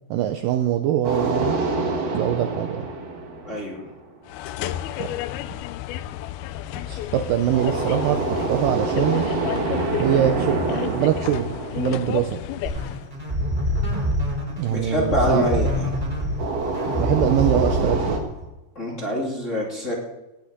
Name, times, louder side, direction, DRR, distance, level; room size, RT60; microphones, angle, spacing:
voice 1, 0.1-1.6 2.1-2.9 5.0-5.1 5.5-5.6 6.9-9.3 10.0-12.4 14.6-15.5 17.0-18.2, right 11 dB, 75° right, 7 dB, 2.1 m, -23 dB
sound 1, 1.0-4.1 7.5-12.9 16.4-18.2, right 3 dB, 45° right, 2.5 m, -27 dB
voice 2, 3.4-3.8 4.6-4.7 14.7-15.8 18.7-19.9, equal, 20° left, -3 dB, 2.4 m, -25 dB
sound 2, 4.3-13.1, left 13 dB, 80° left, 2.3 m, -31 dB
sound 3, 12.6-18.5, equal, 10° right, 2.9 m, -26 dB
18.0 x 6.4 x 9.6 m, 1.0 s
omnidirectional pair, 4.6 m